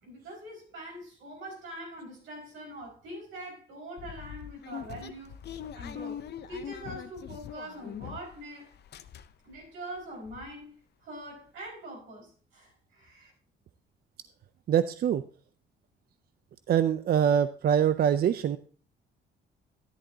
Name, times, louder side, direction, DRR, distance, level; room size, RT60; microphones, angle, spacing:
voice 1, 0.0-5.4 5.7-8.7 9.4-13.3, right 1 dB, 85° right, 5.0 m, -43 dB
sound 1, 4.0-8.4 8.7-9.6 10.0-10.1 10.2-10.5, left 9 dB, 55° left, 0.6 m, -42 dB
voice 2, 14.7-15.2 16.7-18.6, right 9 dB, 50° right, 0.4 m, -24 dB
11.0 x 10.0 x 2.7 m
cardioid pair, 90°, 20 cm